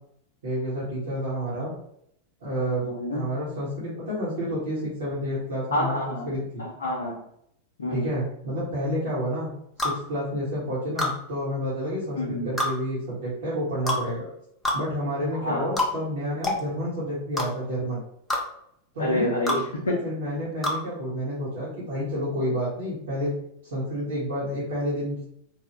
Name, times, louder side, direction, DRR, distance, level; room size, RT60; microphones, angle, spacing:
voice 1, 0.4-1.7 2.4-6.6 7.9-9.5 9.8-14.3 14.7-18.0 18.9-19.3 20.0-23.3 23.6-25.2, equal, 60° right, -8 dB, 1.1 m, -29 dB
voice 2, 2.8-3.2 5.7-6.3 6.6-7.2 7.8-8.1 12.2-12.5 15.3-15.7 19.0-20.0, left 1 dB, 70° left, -3 dB, 0.6 m, -28 dB
sound 1, 9.8-10.0 11.0-11.2 12.6-12.7 13.9-14.0 14.6-14.8 15.8-15.9 16.4-16.6 17.4-17.5 18.3-18.4 19.5-19.6 20.6-20.8, left 1 dB, 15° left, 0.7 m, -25 dB
3.2 x 2.3 x 2.9 m, 0.72 s
figure-of-eight pair, 90°, 0 cm